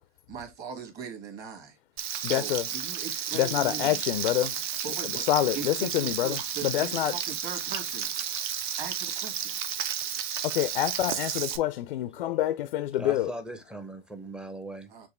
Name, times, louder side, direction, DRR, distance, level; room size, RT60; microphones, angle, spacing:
voice 1, 0.3-1.8 2.1-4.0 4.8-5.3 5.5-8.1 8.8-9.6 14.9-15.1, right 6 dB, 30° right, 1.5 m, -40 dB
Frying (food), 2.0-11.6, right 9 dB, 55° right, 0.7 m, -32 dB
voice 2, 2.2-2.7 3.3-4.6 5.3-7.1 10.4-13.3, left 13 dB, 65° left, 0.5 m, -27 dB
voice 3, 12.7-14.9, right 1 dB, 5° right, 0.6 m, -40 dB
6.0 x 2.5 x 3.1 m
hypercardioid pair, 105°, 30 cm